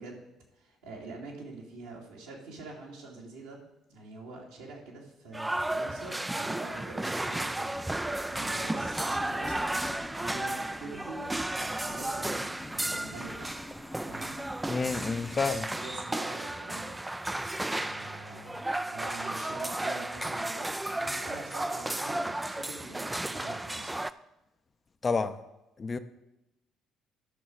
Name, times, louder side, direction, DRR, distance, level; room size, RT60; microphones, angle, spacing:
voice 1, 0.0-3.6 3.9-7.7 8.0-9.7 10.2-12.5 12.7-13.6 14.0-14.4 15.8-16.9 17.6-24.0, right 3 dB, 80° right, -4 dB, 2.7 m, -45 dB
sound 1, 5.3-24.1, right 1 dB, 15° right, 0.5 m, -34 dB
Subway metro underground, 7.8-15.7, left 1 dB, 15° left, 0.9 m, -45 dB
voice 2, 14.7-15.7 25.0-25.4 25.8-26.0, left 4 dB, 35° left, 9 dB, 0.8 m, -29 dB
13.5 x 6.2 x 4.7 m, 0.92 s
hypercardioid pair, 50°, 0 cm